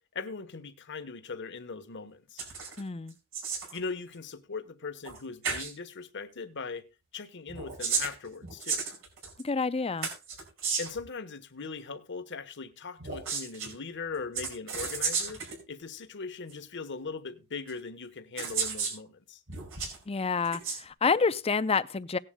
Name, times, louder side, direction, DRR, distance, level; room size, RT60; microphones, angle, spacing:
voice 1, 0.1-2.4 3.7-6.9 7.1-8.8 10.8-15.4 15.7-19.4, left 4 dB, 55° left, 1.2 m, -40 dB
sound 1, 2.4-2.8 3.1-3.8 5.0-5.2 5.4-5.7 7.5-9.4 10.0-11.0 13.0-13.7 14.3-15.6 16.5-16.6 17.7-17.8 18.4-19.0 19.5-20.0 20.4-20.8, right 5 dB, 65° right, 5.2 m, -33 dB
voice 2, 2.8-3.2 9.4-10.1 20.1-22.2, left 5 dB, 30° left, 0.5 m, -28 dB
18.0 x 11.0 x 2.2 m
head